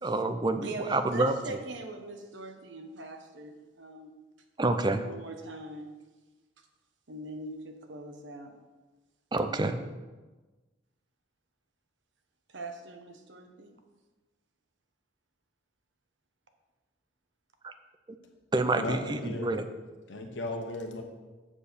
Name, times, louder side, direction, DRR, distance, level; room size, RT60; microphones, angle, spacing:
voice 1, 0.0-1.3 4.6-5.1 9.3-9.8 17.6-17.7 18.5-19.7, right 2 dB, 25° right, 8 dB, 0.5 m, -28 dB
voice 2, 0.6-4.1 5.0-5.9 7.1-8.6 12.5-13.7, right 2 dB, 80° right, 5 dB, 1.0 m, -41 dB
voice 3, 18.8-19.5 20.1-21.0, left 1 dB, 80° left, 4 dB, 1.1 m, -35 dB
7.4 x 4.5 x 6.7 m, 1.2 s
head